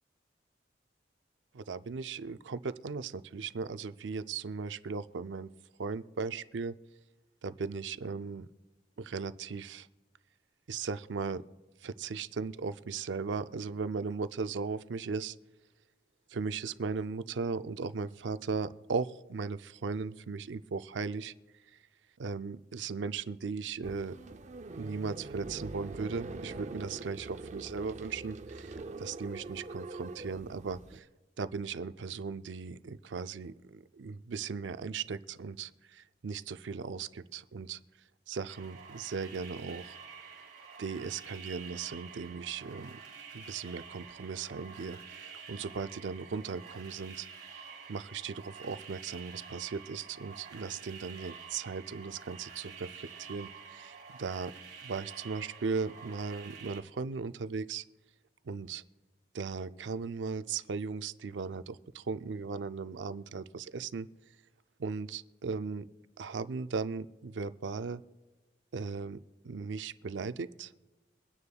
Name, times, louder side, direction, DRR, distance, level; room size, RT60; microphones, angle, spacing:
voice 1, 1.5-5.5 5.8-6.7 7.4-8.5 9.0-9.9 10.7-11.4 11.8-15.4 16.3-21.3 22.2-24.2 24.7-31.1 31.4-37.8 38.3-40.0 40.8-43.0 43.3-47.3 47.9-54.5 54.8-57.8 58.4-58.8 59.3-64.1 64.8-65.9 66.2-68.0 68.7-69.2 69.4-70.7, right 5 dB, 90° right, 12 dB, 0.5 m, -37 dB
sound 1, 23.8-31.0, right 3 dB, 40° right, 0.5 m, -44 dB
sound 2, 38.5-56.8, right 6 dB, 60° right, 2.1 m, -49 dB
23.5 x 9.6 x 2.3 m, 1.2 s
head